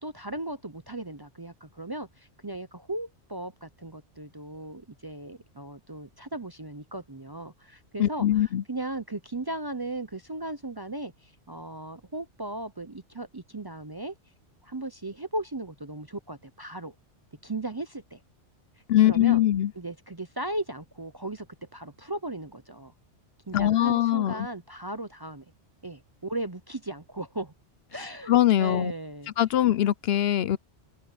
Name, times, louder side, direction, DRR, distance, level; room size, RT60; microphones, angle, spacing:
voice 1, 0.0-14.1 14.6-16.9 17.4-18.2 19.0-19.4 19.8-21.5 21.7-22.9 23.5-25.4 25.8-27.5 27.9-29.3, right 2 dB, 25° right, 0.6 m, -37 dB
voice 2, 8.0-8.6 18.9-19.7 23.5-24.5 28.3-28.9 29.4-30.6, left 12 dB, 65° left, 0.8 m, -22 dB
open air
omnidirectional pair, 1.2 m